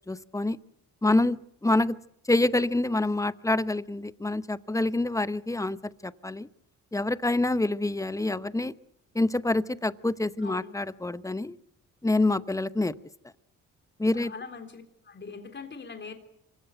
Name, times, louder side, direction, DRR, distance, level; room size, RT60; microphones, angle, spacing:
voice 1, 0.1-0.6 1.0-2.0 2.3-5.8 6.0-6.5 6.9-8.7 9.1-11.6 12.0-12.9 14.0-14.3, left 2 dB, 10° left, 15 dB, 0.8 m, -26 dB
voice 2, 10.4-10.7 14.1-16.1, left 5 dB, 35° left, 6 dB, 3.6 m, -42 dB
26.0 x 16.0 x 9.1 m, 0.76 s
cardioid pair, 90°, 30 cm